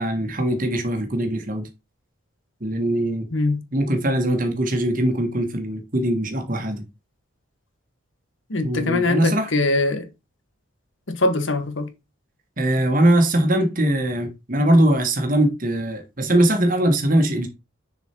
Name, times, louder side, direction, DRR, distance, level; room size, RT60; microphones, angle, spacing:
voice 1, 0.0-1.7 2.6-3.3 3.7-6.8 8.6-9.5 12.6-17.5, right 1 dB, 40° right, 1.4 m, -21 dB
voice 2, 3.3-3.6 8.5-10.1 11.1-11.9, left 2 dB, 65° left, 1.3 m, -22 dB
6.6 x 4.7 x 4.4 m
head